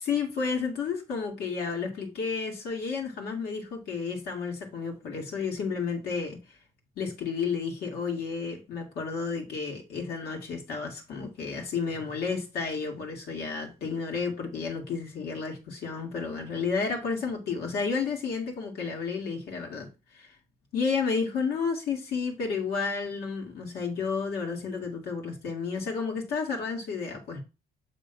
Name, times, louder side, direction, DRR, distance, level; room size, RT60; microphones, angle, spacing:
voice 1, 0.0-6.4 7.0-19.9 20.1-20.3 20.7-27.4, left 5 dB, 70° left, 2.2 m, -31 dB
7.0 x 3.5 x 5.4 m
cardioid pair, 110°, 17 cm